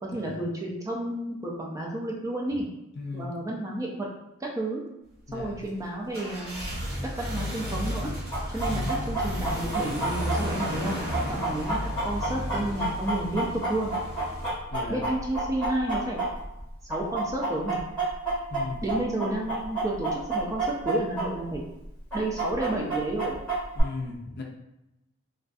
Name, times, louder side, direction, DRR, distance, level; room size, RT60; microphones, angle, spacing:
voice 1, 0.0-2.7 3.1-4.1 4.4-4.8 5.3-6.7 7.0-8.1 8.5-11.0 11.3-13.9 14.9-16.2 16.9-17.8 18.8-21.6 22.1-23.4, right 1 dB, 15° right, -2 dB, 0.3 m, -31 dB
voice 2, 3.0-3.3 5.3-5.5 8.7-8.9 14.7-15.0 18.5-18.8 23.8-24.4, left 3 dB, 50° left, 0 dB, 0.4 m, -36 dB
sound 1, 5.3-14.5, equal, 70° right, 0.7 m, -33 dB
Chicken rooster, 8.3-16.6 16.9-21.3 21.5-21.6 22.1-23.8, right 2 dB, 5° left, 1.5 m, -29 dB
2.5 x 2.3 x 2.3 m, 0.89 s
head